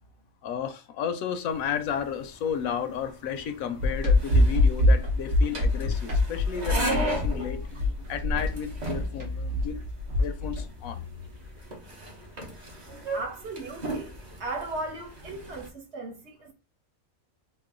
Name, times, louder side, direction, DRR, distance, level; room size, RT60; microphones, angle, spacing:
voice 1, 0.4-9.8 10.2-11.1, left 7 dB, 90° left, 1.1 m, -32 dB
sound 1, 1.5-15.7, right 2 dB, 35° right, 0.9 m, -38 dB
sound 2, 3.8-10.6, left 2 dB, 75° right, 1.6 m, -23 dB
voice 2, 13.1-16.5, right 2 dB, 55° right, 1.2 m, -37 dB
3.8 x 2.2 x 3.7 m
omnidirectional pair, 1.4 m